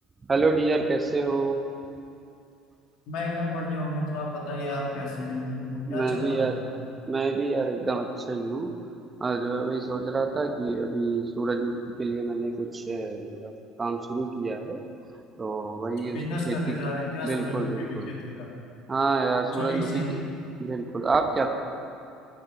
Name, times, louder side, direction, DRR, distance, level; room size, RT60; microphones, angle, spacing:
voice 1, 0.3-1.6 5.9-6.6 7.1-8.8 9.2-13.5 13.8-14.8 15.4-16.2 16.5-16.6 17.2-18.1 18.9-20.0 20.6-21.5, right 3 dB, 25° right, 5 dB, 1.3 m, -27 dB
voice 2, 3.1-6.6 16.1-18.5 19.6-20.3, left 1 dB, 55° left, -2 dB, 2.9 m, -32 dB
19.0 x 9.8 x 5.0 m, 2.6 s
figure-of-eight pair, 60°, 0 cm